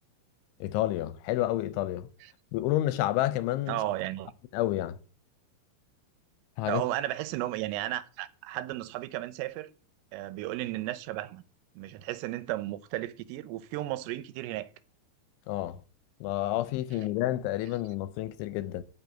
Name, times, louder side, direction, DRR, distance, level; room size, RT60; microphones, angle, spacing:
voice 1, 0.6-2.1 2.5-3.8 4.5-5.0 6.6-6.8 15.5-15.8 16.2-18.8, left 14 dB, 80° left, 2.9 m, -29 dB
voice 2, 3.7-4.3 6.7-9.7 10.1-11.4 11.8-14.7, right 15 dB, 85° right, 3.5 m, -34 dB
13.0 x 5.9 x 9.1 m
omnidirectional pair, 5.8 m